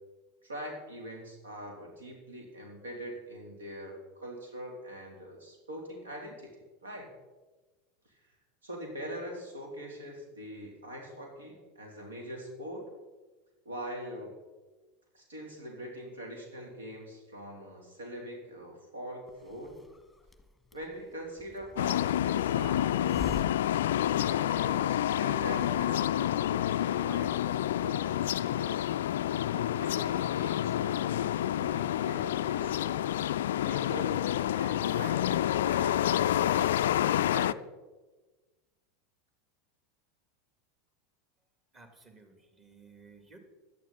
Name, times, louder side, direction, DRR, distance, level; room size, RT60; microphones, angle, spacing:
voice 1, 0.4-6.5 6.8-7.1 8.6-12.9 13.6-14.3 15.1-19.8 20.7-23.4 24.2-28.9 29.5-33.0 33.6-34.3 34.5-37.0 37.3-37.6, equal, 70° right, 1 dB, 3.3 m, -43 dB
Hiss, 19.3-24.8, left 2 dB, 5° left, 1.4 m, -47 dB
sound 1, 21.8-37.5, left 12 dB, 60° left, 0.3 m, -28 dB
voice 2, 41.7-43.4, right 4 dB, 25° right, 5 dB, 2.6 m, -55 dB
17.0 x 12.0 x 4.2 m, 1.2 s
figure-of-eight pair, 80°, 0 cm